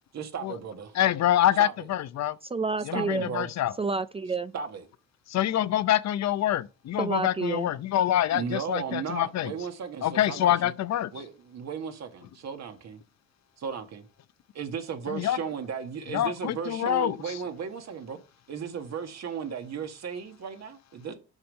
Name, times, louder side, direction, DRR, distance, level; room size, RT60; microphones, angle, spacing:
voice 1, 0.1-1.0 1.6-1.9 2.9-3.5 4.5-4.8 8.3-10.7 11.1-13.0 13.6-14.0 14.5-18.2 18.5-21.1, right 7 dB, 60° right, 1.8 m, -35 dB
voice 2, 0.9-2.4 2.8-3.7 5.3-9.5 10.0-11.1 15.1-15.4 16.1-17.2, left 12 dB, 60° left, 0.7 m, -26 dB
voice 3, 2.4-3.3 3.8-4.5 7.0-7.7, right 4 dB, 20° right, 0.4 m, -29 dB
7.2 x 5.4 x 6.4 m
cardioid pair, 90°, 30 cm